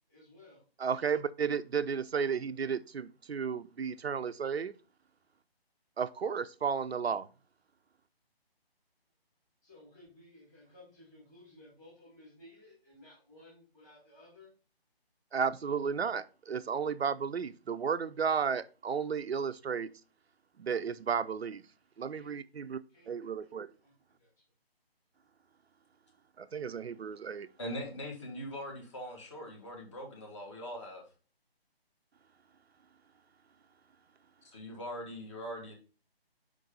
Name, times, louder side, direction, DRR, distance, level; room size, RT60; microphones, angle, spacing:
voice 1, 0.1-0.6 9.6-14.5 22.1-22.4 22.9-23.3 23.8-23.9 24.2-24.3, left 1 dB, 10° left, 2.2 m, -57 dB
voice 2, 0.8-4.7 6.0-7.3 15.3-19.9 20.6-21.6 22.0-22.8 23.1-23.7 26.4-27.5, right 6 dB, 80° right, 0.5 m, -33 dB
voice 3, 27.6-31.0 34.4-35.7, equal, 30° left, 1.6 m, -41 dB
5.1 x 4.0 x 5.2 m
figure-of-eight pair, 155°, 31 cm